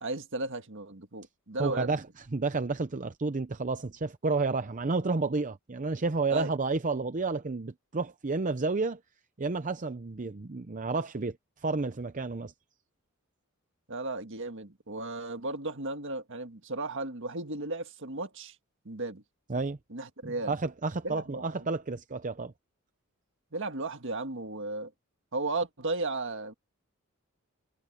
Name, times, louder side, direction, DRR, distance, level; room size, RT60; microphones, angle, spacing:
voice 1, 0.0-1.9 6.3-6.5 13.9-18.6 18.9-19.2 19.9-20.5 21.0-21.5 23.5-24.9 25.3-26.5, right 2 dB, 60° right, 1.8 m, -35 dB
voice 2, 1.6-2.0 2.3-9.0 9.4-12.5 19.5-19.8 20.2-22.5, right 3 dB, 35° right, 0.7 m, -31 dB
head